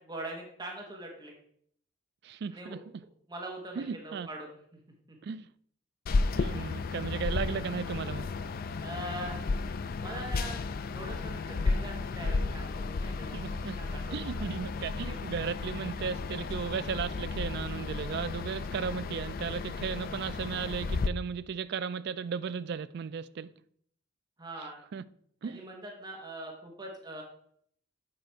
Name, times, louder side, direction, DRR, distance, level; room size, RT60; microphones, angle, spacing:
voice 1, 0.0-1.3 2.5-2.8 3.3-4.8 5.1-5.2 6.1-6.6 8.8-9.4 10.0-14.5 15.0-15.1 24.4-24.8 25.4-27.2, right 1 dB, 20° right, 1.2 m, -43 dB
voice 2, 2.2-3.0 3.8-4.3 5.2-5.5 6.1-8.3 13.3-13.8 14.1-23.5 24.6-25.0 25.4-25.6, right 6 dB, 55° right, 0.3 m, -36 dB
sound 1, 6.1-21.1, left 3 dB, 50° left, 0.4 m, -33 dB
7.7 x 4.9 x 4.5 m
head